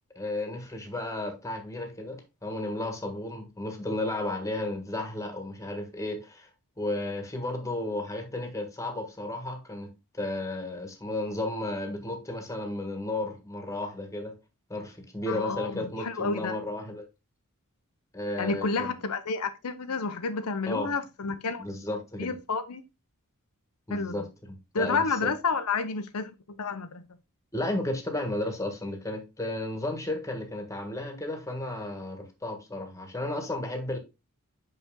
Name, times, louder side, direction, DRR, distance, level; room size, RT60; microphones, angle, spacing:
voice 1, 0.1-6.5 6.8-14.3 14.7-17.0 18.1-18.9 20.7-20.9 21.2-22.3 23.9-25.3 27.5-34.0, left 1 dB, 15° left, 1.4 m, -33 dB
voice 2, 15.3-16.6 18.4-21.6 22.2-22.8 23.9-24.3 24.7-27.0, left 4 dB, 85° left, 0.8 m, -30 dB
6.0 x 5.4 x 3.7 m
head